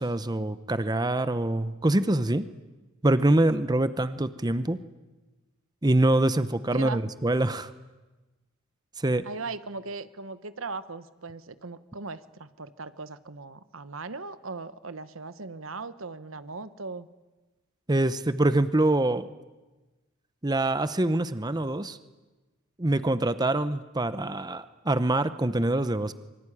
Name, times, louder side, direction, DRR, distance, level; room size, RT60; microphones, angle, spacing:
voice 1, 0.0-2.5 3.0-4.8 5.8-7.7 9.0-9.2 17.9-19.3 20.4-22.0 22.8-26.1, right 1 dB, 20° right, 12 dB, 0.8 m, -25 dB
voice 2, 6.7-7.0 9.2-17.1, right 3 dB, 70° right, 13 dB, 1.2 m, -38 dB
25.5 x 23.5 x 10.0 m, 1.2 s
head